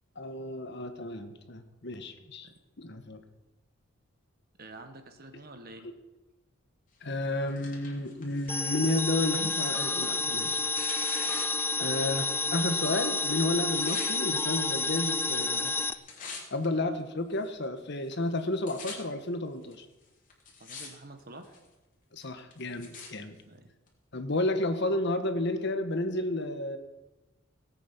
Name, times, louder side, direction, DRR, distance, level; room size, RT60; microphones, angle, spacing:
voice 1, 0.2-2.5 2.8-3.2 7.0-10.6 11.8-15.7 16.5-19.8 22.1-23.4 24.1-26.8, left 2 dB, 55° left, 8 dB, 1.3 m, -31 dB
voice 2, 4.6-5.9 20.6-21.6 23.5-23.7, right 2 dB, 45° right, 7 dB, 1.6 m, -48 dB
Tearing, 7.1-12.5 12.8-14.2 14.9-15.4 15.7-16.6 17.3-17.4 18.1-18.2 18.4-18.9 19.7-19.8 20.3-20.9 21.2-21.7 22.2-23.1 23.9-24.0, left 4 dB, 40° left, 3.1 m, -45 dB
sound 1, 8.5-15.9, left 3 dB, 10° left, 0.4 m, -30 dB
18.0 x 8.4 x 6.1 m, 1.1 s
head